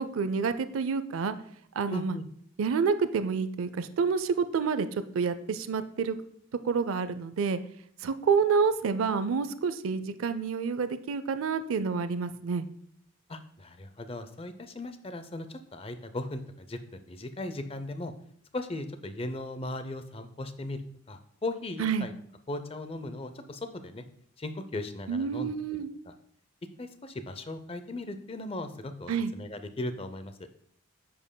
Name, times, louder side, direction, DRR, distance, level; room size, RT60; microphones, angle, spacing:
voice 1, 0.0-1.4 1.7-2.2 2.6-6.2 6.6-7.6 8.0-12.7 21.8-22.1 25.1-25.9 29.1-29.3, right 5 dB, 75° right, 12 dB, 0.4 m, -28 dB
voice 2, 1.9-2.3 13.3-18.1 18.5-20.8 21.1-22.1 22.5-24.0 24.4-25.5 26.1-26.2 26.8-30.3, left 2 dB, 25° left, 9 dB, 0.5 m, -37 dB
10.0 x 7.5 x 2.2 m, 0.66 s
head